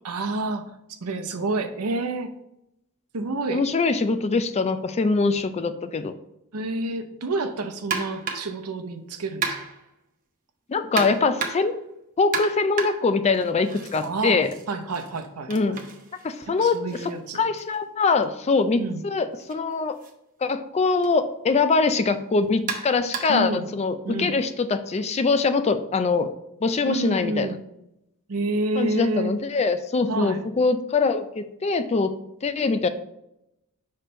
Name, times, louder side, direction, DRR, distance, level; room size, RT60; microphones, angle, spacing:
voice 1, 0.0-2.3 3.1-3.6 6.5-9.6 14.0-14.4 14.7-15.8 16.6-17.4 18.8-19.0 23.3-23.7 24.0-24.3 26.9-27.6 28.3-29.3 30.1-30.4, right 2 dB, 80° right, 7 dB, 0.7 m, -29 dB
voice 2, 3.5-6.1 10.7-11.8 12.2-14.5 15.5-15.8 16.2-16.8 17.3-20.0 20.4-26.3 26.6-27.5 28.8-32.1 32.4-32.9, left 4 dB, 30° left, 10 dB, 0.4 m, -23 dB
sound 1, 7.9-8.6 9.4-9.9 11.0-11.8 12.3-14.1 14.4-18.3 19.4-19.5 20.0-20.1 21.0-21.2 22.7-23.5, right 5 dB, 40° right, 0.8 m, -33 dB
6.0 x 3.2 x 5.4 m, 0.84 s
head